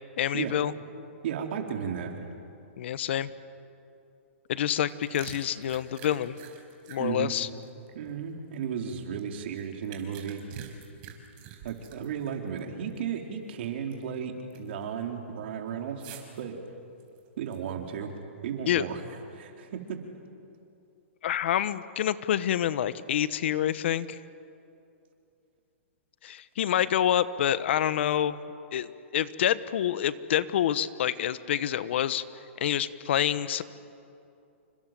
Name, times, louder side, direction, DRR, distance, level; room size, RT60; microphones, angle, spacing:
voice 1, 0.2-0.7 2.8-3.3 4.5-6.4 6.9-7.5 18.7-18.9 21.2-24.2 26.2-28.4 28.7-32.2 32.6-33.6, left 10 dB, 60° left, 15 dB, 1.2 m, -27 dB
voice 2, 1.2-2.1 7.0-7.3 7.9-10.4 11.6-16.0 16.4-16.6 17.4-18.1 18.4-19.0 19.3-20.0, right 8 dB, 55° right, 3 dB, 4.2 m, -34 dB
sound 1, 4.7-8.6 9.1-12.6 12.9-13.0 13.5-14.2 14.5-14.8 16.0-16.4 17.0-17.9, right 9 dB, 40° right, 5.0 m, -47 dB
29.0 x 26.0 x 7.7 m, 2.7 s
hypercardioid pair, 140°, 7 cm